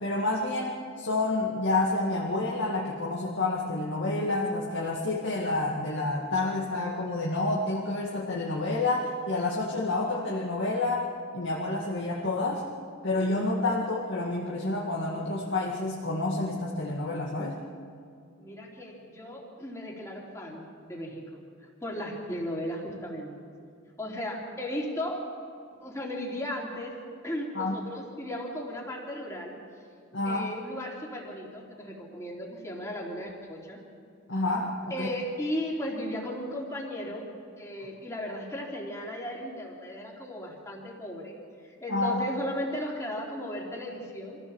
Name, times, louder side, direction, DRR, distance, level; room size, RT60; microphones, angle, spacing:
voice 1, 0.0-11.1 11.3-12.6 13.0-17.6 27.5-27.8 30.1-30.5 34.3-35.1 41.9-42.2, left 2 dB, 60° left, -4 dB, 2.1 m, -29 dB
voice 2, 18.4-21.4 21.8-23.3 24.0-25.3 25.8-27.0 27.2-29.6 30.2-33.8 34.9-37.3 37.6-41.4 41.6-44.4, equal, 15° left, -2 dB, 3.4 m, -36 dB
25.0 x 15.5 x 7.2 m, 2.3 s
head